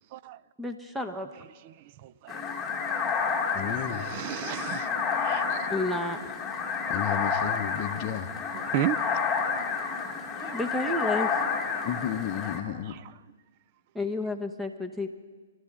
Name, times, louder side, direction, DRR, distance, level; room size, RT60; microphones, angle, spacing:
voice 1, 0.6-1.3 5.7-6.4 10.5-11.4 13.9-15.1, left 2 dB, 5° right, 0.9 m, -31 dB
voice 2, 1.6-2.4 3.7-4.9 5.2-5.7 8.5-9.2 10.4-10.7 11.4-11.8 12.9-13.0, right 12 dB, 40° right, 0.4 m, -35 dB
sound 1, 2.3-12.6, left 5 dB, 10° left, 1.6 m, -30 dB
voice 3, 3.5-4.1 6.9-8.3 11.8-13.0, left 10 dB, 35° left, 0.8 m, -33 dB
23.5 x 12.5 x 3.7 m
hypercardioid pair, 140°, 0 cm